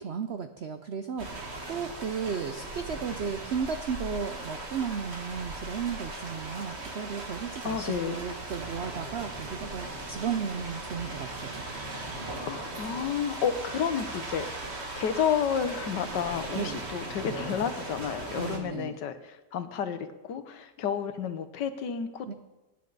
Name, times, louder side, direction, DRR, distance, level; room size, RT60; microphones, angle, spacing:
voice 1, 0.0-11.6 16.5-16.8 18.4-19.0 22.3-22.4, right 6 dB, 75° right, 8 dB, 0.6 m, -34 dB
sound 1, 1.2-18.6, right 2 dB, 40° right, 1.9 m, -38 dB
voice 2, 7.6-8.2 12.4-14.5 15.0-22.3, left 7 dB, 80° left, 10 dB, 1.6 m, -31 dB
23.0 x 9.9 x 4.0 m, 1.1 s
omnidirectional pair, 1.9 m